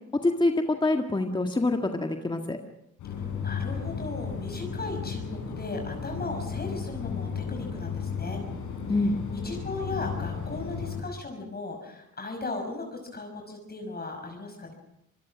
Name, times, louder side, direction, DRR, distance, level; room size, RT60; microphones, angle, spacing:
voice 1, 0.2-2.6 8.9-9.2, left 2 dB, 15° left, 4 dB, 1.8 m, -25 dB
sound 1, 3.0-11.0, left 6 dB, 85° left, 7.9 m, -34 dB
voice 2, 3.2-8.4 9.3-14.7, left 2 dB, 30° left, 3 dB, 5.7 m, -37 dB
25.5 x 21.0 x 6.3 m, 0.82 s
cardioid pair, 90°, 30 cm